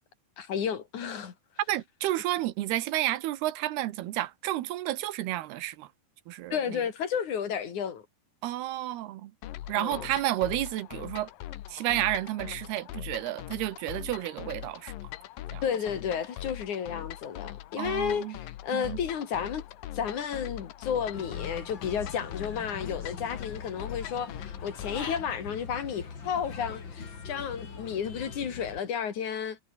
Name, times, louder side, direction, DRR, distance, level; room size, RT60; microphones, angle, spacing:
voice 1, 0.4-1.3 6.5-8.0 9.8-10.1 15.6-19.7 19.9-29.6, left 8 dB, 55° left, 3.8 m, -32 dB
voice 2, 1.7-5.9 6.3-6.8 8.4-9.3 9.7-11.3 11.7-14.9 15.5-15.6 17.8-18.4 18.7-19.0, right 15 dB, 90° right, 3.1 m, -31 dB
sound 1, 9.4-25.3, left 13 dB, 70° left, 2.7 m, -41 dB
Human voice / Bird, 21.1-28.8, left 5 dB, 35° left, 3.0 m, -42 dB
omnidirectional pair, 4.5 m